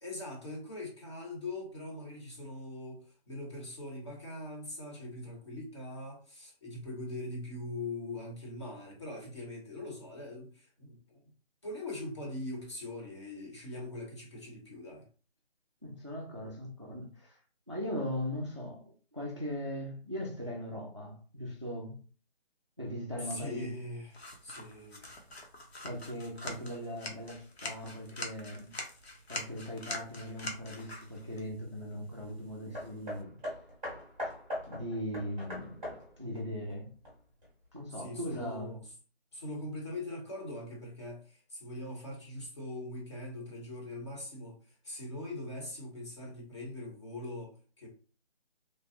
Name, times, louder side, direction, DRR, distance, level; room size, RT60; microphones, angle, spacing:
voice 1, 0.0-11.2 11.6-15.1 23.2-25.1 37.9-38.9 39.3-47.9, left 1 dB, 25° left, 0.8 m, -42 dB
voice 2, 15.8-17.4 17.7-22.0 22.8-23.7 25.8-28.7 29.3-33.4 34.2-34.3 34.7-35.8 36.2-36.9 37.7-38.8, equal, 30° right, 0.4 m, -39 dB
sound 1, 24.1-33.2, left 2 dB, 75° left, 1.0 m, -45 dB
Hammer, 32.7-37.5 38.3-38.4, left 1 dB, 10° right, 0.8 m, -41 dB
3.2 x 2.1 x 2.8 m
figure-of-eight pair, 160°, 32 cm